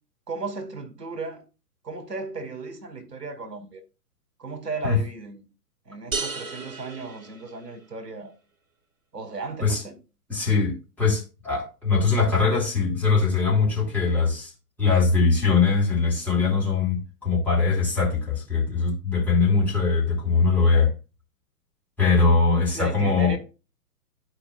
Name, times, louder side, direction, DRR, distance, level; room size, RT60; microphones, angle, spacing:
voice 1, 0.3-1.4 1.8-3.8 4.4-5.5 5.9-8.3 9.1-10.0 22.7-23.4, right 3 dB, 80° right, 1.7 m, -35 dB
sound 1, 6.1-8.0, right 4 dB, 55° right, 1.7 m, -34 dB
voice 2, 10.3-14.5 14.8-20.9 22.0-23.3, left 4 dB, 5° left, 2.1 m, -21 dB
12.0 x 4.9 x 2.4 m
figure-of-eight pair, 120°, 48 cm